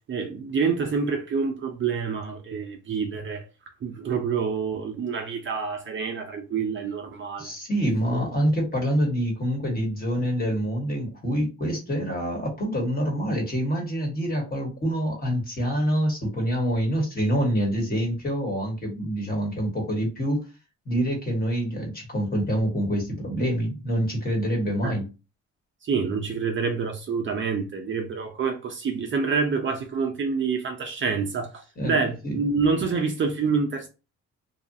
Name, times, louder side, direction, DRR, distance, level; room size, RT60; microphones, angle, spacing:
voice 1, 0.1-3.4 3.8-7.5 8.1-8.2 24.8-24.9 25.8-33.9, right 5 dB, 40° right, 0.5 m, -27 dB
voice 2, 7.4-20.4 20.8-25.1 31.8-32.0 32.2-32.4, equal, 30° left, 1.3 m, -26 dB
2.7 x 2.3 x 2.6 m
cardioid pair, 90°, 30 cm